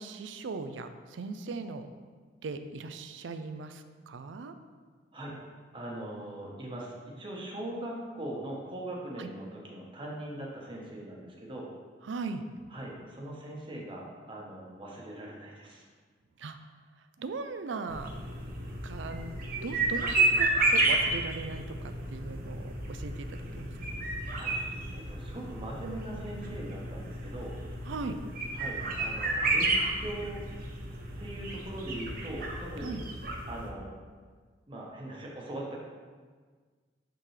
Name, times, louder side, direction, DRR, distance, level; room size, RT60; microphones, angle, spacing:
voice 1, 0.0-1.9 2.4-4.5 9.2-9.3 12.0-12.4 16.4-16.6 17.2-18.1 18.8-23.7 27.9-28.2 32.8-33.0, right 4 dB, 80° right, 9 dB, 0.4 m, -39 dB
voice 2, 5.7-11.7 12.7-15.8 24.3-24.5 24.9-27.5 28.5-30.4 31.2-33.0 33.5-33.9 34.7-35.8, right 1 dB, 25° right, -3 dB, 1.1 m, -41 dB
sound 1, 17.9-33.7, right 2 dB, 50° right, 0.8 m, -31 dB
9.1 x 3.8 x 3.3 m, 1.5 s
head